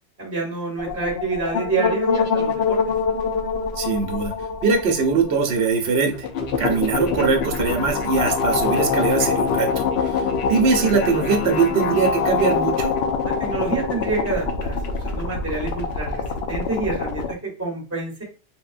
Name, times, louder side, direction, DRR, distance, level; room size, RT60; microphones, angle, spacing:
voice 1, 0.2-2.8 13.2-14.8 15.0-18.2, right 4 dB, 15° right, -2 dB, 0.9 m, -27 dB
sound 1, 0.8-17.3, left 5 dB, 65° left, 0.7 m, -24 dB
voice 2, 3.8-4.3 4.6-6.3 6.6-12.9, right 5 dB, 65° right, 2 dB, 0.9 m, -21 dB
3.8 x 2.1 x 2.3 m, 0.33 s
omnidirectional pair, 1.2 m